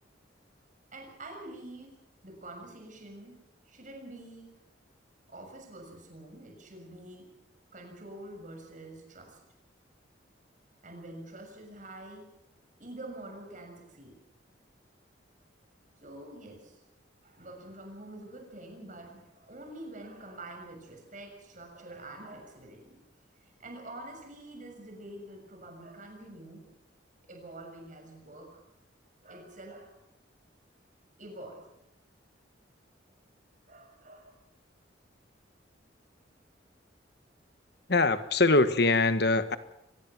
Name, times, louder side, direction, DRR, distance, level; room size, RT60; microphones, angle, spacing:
voice 1, 0.9-4.5 5.3-7.3 7.7-9.4 10.8-12.3 12.8-14.2 16.0-16.8 17.2-23.0 23.4-26.7 27.2-28.6 29.2-30.0 31.2-31.7 33.7-34.4 36.2-36.3, right 1 dB, 40° right, 3 dB, 6.6 m, -46 dB
voice 2, 37.9-39.6, left 3 dB, 55° left, 12 dB, 1.4 m, -23 dB
24.5 x 20.0 x 6.2 m, 0.86 s
head